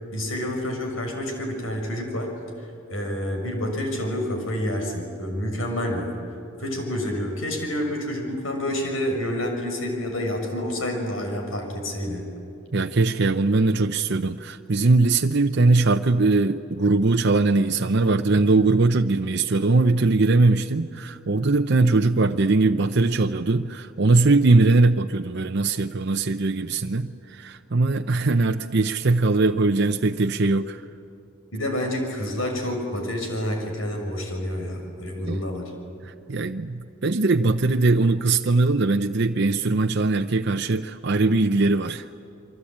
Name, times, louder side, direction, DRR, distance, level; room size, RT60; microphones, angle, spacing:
voice 1, 0.1-2.3 2.6-6.2 6.6-12.2 31.5-35.7, left 1 dB, 80° left, 3 dB, 6.3 m, -28 dB
voice 2, 12.7-30.8 35.2-35.4 36.0-42.1, right 3 dB, 55° right, 5 dB, 0.7 m, -21 dB
28.5 x 24.0 x 8.8 m, 2.6 s
head